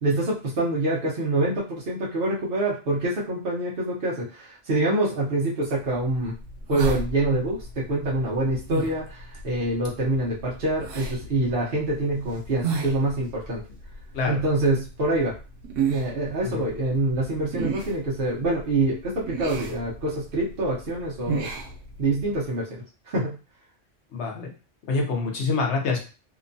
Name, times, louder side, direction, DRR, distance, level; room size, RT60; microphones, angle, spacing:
voice 1, 0.0-6.3 6.7-13.6 14.3-15.3 15.9-21.5 22.0-23.4, right 2 dB, 55° right, -5 dB, 0.8 m, -26 dB
sound 1, 5.8-22.4, right 4 dB, 85° right, 1.0 m, -35 dB
voice 2, 24.1-24.5 24.9-26.0, left 4 dB, 70° left, 1 dB, 1.0 m, -26 dB
2.9 x 2.2 x 2.6 m, 0.34 s
omnidirectional pair, 1.3 m